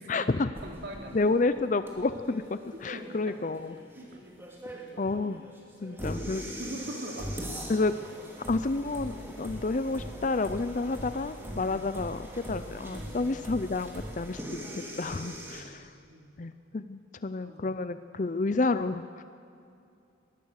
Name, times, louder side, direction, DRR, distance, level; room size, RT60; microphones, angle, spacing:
voice 1, 0.1-0.5 1.1-3.7 5.0-5.4 5.8-6.4 7.7-7.9 8.5-14.6 15.0-15.9 16.4-19.2, left 3 dB, 40° left, 12 dB, 0.5 m, -30 dB
sound 1, 0.5-15.6, equal, 10° right, 2.7 m, -41 dB
voice 2, 0.6-1.2 2.9-3.3 4.0-4.3 4.7-4.9 5.6-7.8 11.4-11.9 12.9-13.3 15.4-16.4 17.4-17.8, right 1 dB, 55° right, 1 dB, 3.2 m, -44 dB
22.5 x 19.5 x 6.5 m, 2.5 s
head